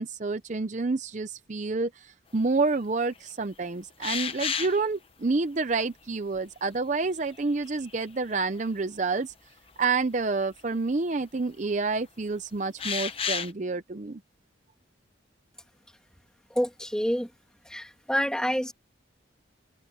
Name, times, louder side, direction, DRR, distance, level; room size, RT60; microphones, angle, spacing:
voice 1, 0.0-9.3 9.8-14.2, right 3 dB, 40° right, 0.6 m, -28 dB
sound 1, 4.0-4.8 6.3-6.4 7.3-8.2 8.6-8.7 10.6-10.7 12.8-13.5, left 6 dB, 30° left, 1.0 m, -31 dB
voice 2, 16.5-17.3 17.7-18.7, equal, 5° left, 2.0 m, -28 dB
head